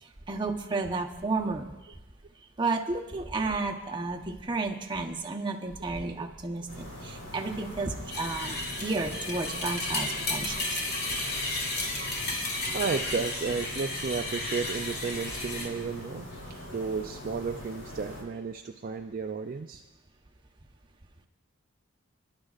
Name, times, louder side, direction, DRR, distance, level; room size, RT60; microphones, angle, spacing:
voice 1, 0.0-2.0 2.6-10.8 12.0-12.1, right 3 dB, 20° right, 1 dB, 0.9 m, -32 dB
sound 1, 6.7-18.2, left 1 dB, 85° left, 5.1 m, -43 dB
sound 2, 8.1-15.7, left 2 dB, 45° left, 2.1 m, -33 dB
voice 2, 12.7-16.3 16.7-19.8, right 5 dB, 40° right, 5 dB, 0.3 m, -33 dB
24.0 x 11.5 x 2.5 m, 1.1 s
head